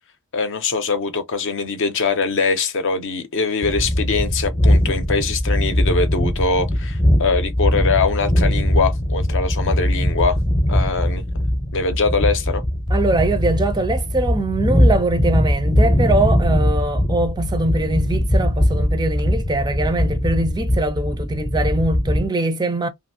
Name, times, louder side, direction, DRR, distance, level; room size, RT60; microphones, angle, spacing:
voice 1, 0.3-10.4 10.7-11.3 11.7-12.6, left 4 dB, 60° left, 0.7 m, -22 dB
sound 1, 3.6-22.3, equal, 20° left, 0.7 m, -20 dB
voice 2, 12.9-22.9, right 2 dB, 20° right, 0.4 m, -22 dB
2.6 x 2.5 x 2.7 m
head